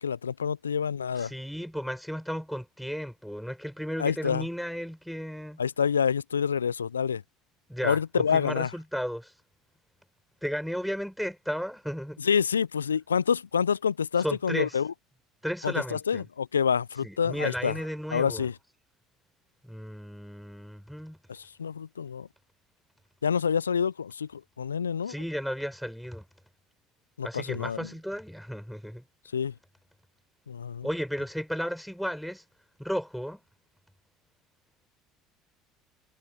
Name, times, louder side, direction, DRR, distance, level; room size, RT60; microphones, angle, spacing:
voice 1, 0.0-1.3 4.0-4.4 5.6-7.2 7.8-8.7 12.2-14.9 15.6-17.7 18.1-18.5 21.3-22.3 23.2-25.1 27.2-27.9 29.3-29.5 30.5-30.9, left 7 dB, 85° left, 0.6 m, -27 dB
voice 2, 1.2-5.6 7.7-9.3 10.4-12.2 14.2-14.8 15.4-16.3 17.0-18.5 19.6-21.2 25.1-26.2 27.2-29.0 30.8-32.4 32.8-33.4, equal, ahead, 5.1 m, -34 dB
figure-of-eight pair, 65°, 0 cm